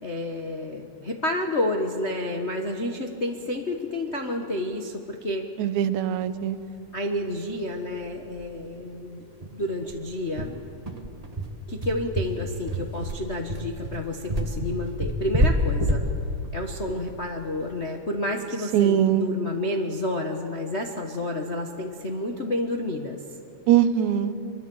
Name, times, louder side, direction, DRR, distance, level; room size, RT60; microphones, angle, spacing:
voice 1, 0.0-5.4 6.9-9.3 9.5-10.6 11.7-16.0 16.5-23.2, left 1 dB, 45° left, 1 dB, 0.8 m, -30 dB
voice 2, 5.6-6.6 18.7-19.3 23.7-24.3, right 10 dB, 80° right, 12 dB, 2.2 m, -21 dB
sound 1, 7.5-7.6 7.9-8.0 8.3-8.5 8.8-8.9 9.4-17.8, equal, 25° right, 0.8 m, -28 dB
24.5 x 23.0 x 7.9 m, 2.6 s
omnidirectional pair, 3.4 m